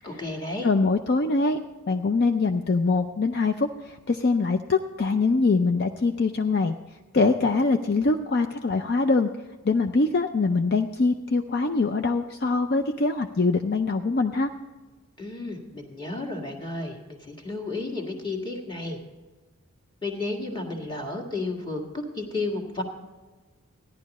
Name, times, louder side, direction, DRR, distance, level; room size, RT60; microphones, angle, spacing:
voice 1, 0.0-0.7 15.2-19.0 20.0-22.8, left 2 dB, 20° left, 2 dB, 1.8 m, -32 dB
voice 2, 0.6-1.6 1.9-6.7 7.1-9.3 9.6-14.5, left 3 dB, 45° left, 6 dB, 0.4 m, -23 dB
15.0 x 11.0 x 4.1 m, 1.3 s
head